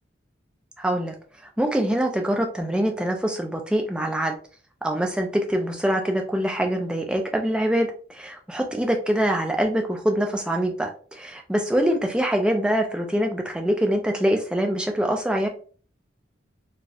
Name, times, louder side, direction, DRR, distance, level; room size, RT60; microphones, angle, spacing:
voice 1, 0.8-1.1 1.6-4.3 4.8-15.5, right 1 dB, 5° right, 2 dB, 0.3 m, -24 dB
2.8 x 2.0 x 2.3 m, 0.42 s
head